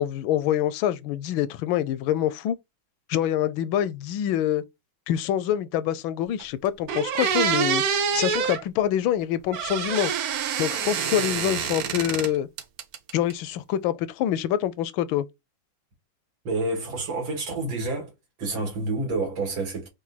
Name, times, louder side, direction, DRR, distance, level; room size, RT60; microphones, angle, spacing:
voice 1, 0.0-2.6 3.1-4.6 5.1-7.8 8.1-10.1 10.6-12.5 13.1-15.2, left 11 dB, 80° left, 1.3 m, -25 dB
sound 1, 6.4-6.5 6.9-8.6 9.5-12.3 12.6-13.3, right 7 dB, 65° right, 0.9 m, -26 dB
voice 2, 16.4-18.1 18.4-19.9, right 2 dB, 85° right, 2.7 m, -28 dB
5.2 x 2.6 x 4.0 m
omnidirectional pair, 2.1 m